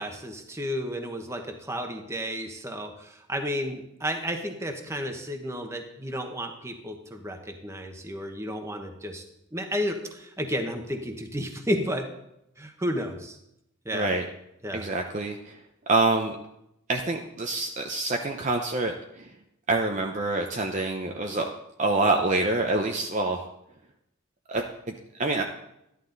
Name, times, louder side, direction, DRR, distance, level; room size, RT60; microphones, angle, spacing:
voice 1, 0.0-9.2 9.5-12.1 12.6-13.4 13.8-14.1 14.6-14.8, equal, 15° right, 5 dB, 1.1 m, -32 dB
voice 2, 13.9-14.3 14.7-15.6 15.9-16.4 16.9-19.3 19.7-21.5 21.8-23.4 24.5-25.4, right 2 dB, 35° right, 3 dB, 0.7 m, -26 dB
13.5 x 11.0 x 3.9 m, 0.83 s
head